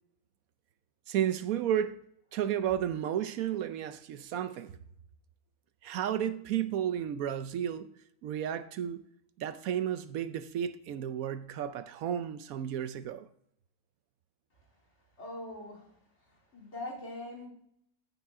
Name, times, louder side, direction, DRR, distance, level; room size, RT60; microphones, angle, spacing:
voice 1, 1.1-2.0 2.3-4.8 5.8-7.9 8.2-9.0 9.4-13.3, right 10 dB, 75° right, 1.0 m, -32 dB
voice 2, 15.2-15.9 16.3-17.5, left 2 dB, 50° left, 3.9 m, -42 dB
14.5 x 7.1 x 3.7 m
omnidirectional pair, 1.5 m